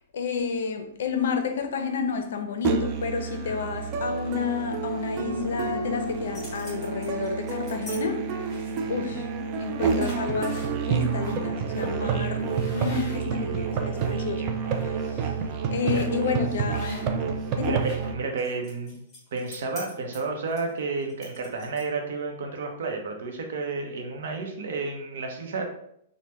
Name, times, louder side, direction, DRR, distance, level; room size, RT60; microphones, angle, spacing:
voice 1, 0.1-8.6 8.9-9.3 9.5-15.3 15.7-17.1 17.5-17.8, left 6 dB, 75° left, 0.5 m, -30 dB
Musical instrument, 2.6-18.1, right 5 dB, 30° right, 0.3 m, -29 dB
sound 1, 6.1-8.0 8.4-8.9 9.5-9.6 9.9-10.7 11.2-11.4 11.7-11.9 12.4-14.1 14.6-14.8 15.9-16.2 16.7-17.3 17.6-22.1, left 1 dB, 15° left, 1.3 m, -45 dB
voice 2, 8.8-9.2 15.9-16.4 17.6-19.0 19.3-25.6, right 4 dB, 70° right, 0.6 m, -31 dB
3.3 x 2.1 x 2.9 m
hypercardioid pair, 160°, 0 cm